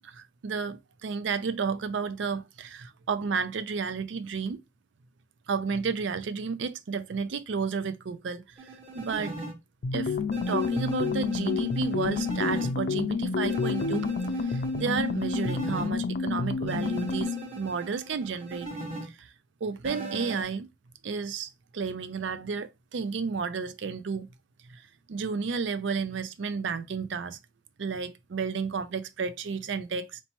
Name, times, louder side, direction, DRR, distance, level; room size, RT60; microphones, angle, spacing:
voice 1, 0.0-4.6 5.5-9.4 9.9-10.1 10.5-14.1 14.4-18.7 19.0-19.3 19.6-20.7 21.0-24.3 24.7-24.8 25.1-27.4 27.8-30.2, right 5 dB, 75° right, 0.4 m, -32 dB
sound 1, 8.6-9.5 10.3-12.7 13.5-15.9 16.7-19.1 19.8-20.4, right 2 dB, 35° right, 1.3 m, -39 dB
sound 2, 9.8-17.5, left 4 dB, 60° left, 0.4 m, -29 dB
4.3 x 2.9 x 2.9 m
head